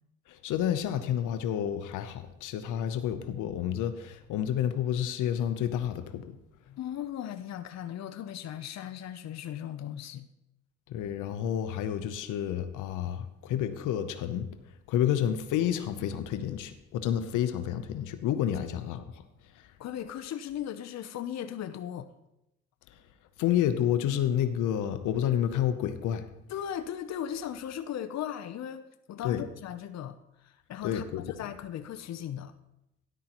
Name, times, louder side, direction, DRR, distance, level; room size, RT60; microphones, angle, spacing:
voice 1, 0.3-6.4 10.9-14.5 14.9-19.2 23.4-26.2 29.2-29.4 30.8-31.2, left 10 dB, 90° left, 10 dB, 0.8 m, -29 dB
voice 2, 6.7-10.3 19.8-22.1 26.5-28.8 29.1-32.5, left 10 dB, 60° left, 9 dB, 0.7 m, -37 dB
13.0 x 11.0 x 3.0 m, 0.88 s
cardioid pair, 90°, 30 cm